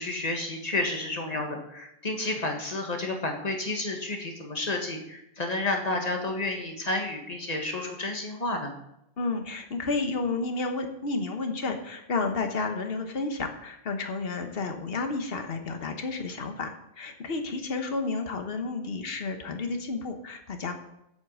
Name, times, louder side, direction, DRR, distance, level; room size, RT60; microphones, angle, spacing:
voice 1, 0.0-8.7, left 2 dB, 35° left, 2 dB, 1.7 m, -31 dB
voice 2, 9.2-20.7, left 3 dB, 55° left, 5 dB, 1.4 m, -31 dB
8.3 x 8.2 x 6.4 m, 0.83 s
omnidirectional pair, 1.2 m